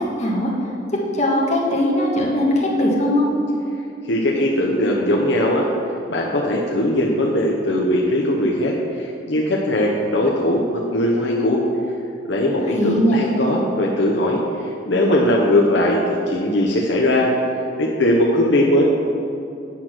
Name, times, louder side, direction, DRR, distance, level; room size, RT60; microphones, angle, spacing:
voice 1, 0.2-0.5 1.1-3.2 12.7-13.2, left 1 dB, 40° left, -3 dB, 1.7 m, -19 dB
voice 2, 4.0-5.7 6.1-11.6 12.3-17.3 17.8-18.8, left 1 dB, 65° left, -2 dB, 0.9 m, -19 dB
8.7 x 6.2 x 5.9 m, 2.6 s
head